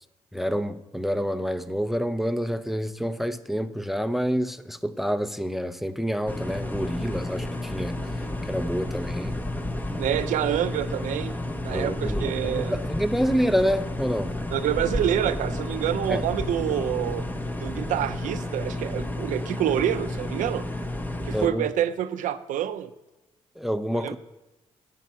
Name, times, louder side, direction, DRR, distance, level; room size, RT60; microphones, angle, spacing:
voice 1, 0.3-9.3 11.7-14.3 16.1-16.2 21.3-21.7 23.6-24.2, equal, ahead, 0.7 m, -28 dB
sound 1, 6.3-21.5, left 1 dB, 15° left, 1.0 m, -31 dB
voice 2, 10.0-11.4 11.6-12.8 14.5-17.2 17.6-20.6 21.3-22.9 23.9-24.2, right 10 dB, 75° right, 0.8 m, -27 dB
11.0 x 9.2 x 5.7 m
cardioid pair, 80°, 13 cm